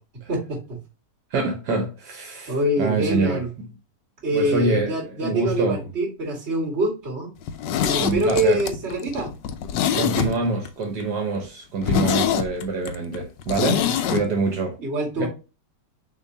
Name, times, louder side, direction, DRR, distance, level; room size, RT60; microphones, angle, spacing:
voice 1, 0.3-0.8 2.5-3.5 4.2-7.3 7.8-9.3 13.7-13.9 14.8-15.3, right 1 dB, 40° right, 2.6 m, -25 dB
voice 2, 1.3-3.7 4.3-5.9 8.0-8.6 10.0-14.8 15.2-15.3, right 3 dB, 70° right, 1.6 m, -26 dB
Zipper (clothing), 7.4-10.7 11.0-11.1 11.4-11.5 11.8-14.2 14.5-14.6, left 9 dB, 85° left, 1.3 m, -24 dB
6.2 x 3.0 x 2.7 m
omnidirectional pair, 1.8 m